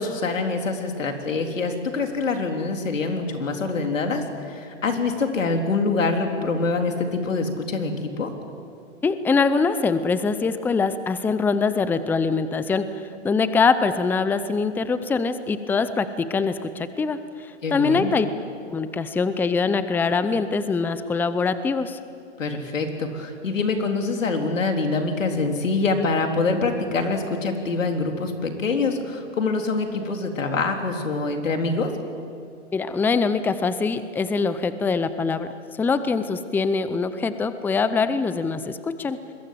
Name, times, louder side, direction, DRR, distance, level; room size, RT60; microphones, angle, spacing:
voice 1, 0.0-8.3 17.6-18.1 22.4-31.9, left 3 dB, 90° left, 4 dB, 3.7 m, -25 dB
voice 2, 9.0-18.3 18.7-22.0 32.7-35.5 35.8-39.2, left 4 dB, 5° left, 12 dB, 0.6 m, -23 dB
26.0 x 22.0 x 7.7 m, 2.4 s
hypercardioid pair, 130°, 38 cm